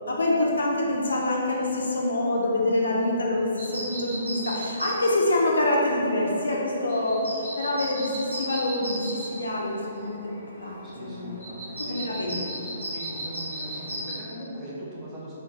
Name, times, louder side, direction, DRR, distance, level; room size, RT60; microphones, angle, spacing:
voice 1, 0.0-10.3 10.6-11.4 11.8-12.4, left 1 dB, 70° left, -3 dB, 0.5 m, -26 dB
sound 1, 3.6-14.2, right 1 dB, 85° right, 1.1 m, -37 dB
voice 2, 10.8-12.4 12.9-15.3, equal, 20° right, -8 dB, 0.8 m, -40 dB
3.6 x 2.4 x 2.7 m, 2.8 s
figure-of-eight pair, 125°, 0 cm